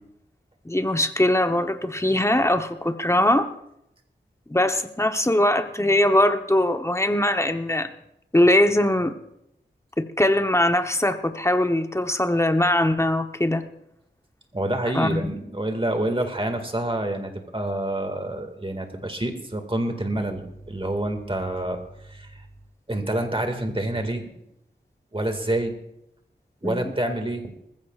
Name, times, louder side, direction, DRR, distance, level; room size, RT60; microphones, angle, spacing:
voice 1, 0.6-3.5 4.5-7.9 8.3-9.2 10.0-13.6 14.9-15.2 26.6-26.9, left 1 dB, 15° left, 7 dB, 0.9 m, -21 dB
voice 2, 14.5-21.8 22.0-22.4 22.9-24.2 25.1-25.7 26.6-27.4, right 1 dB, 30° right, 5 dB, 2.0 m, -27 dB
20.0 x 15.0 x 2.4 m, 0.79 s
wide cardioid pair, 55°, 19 cm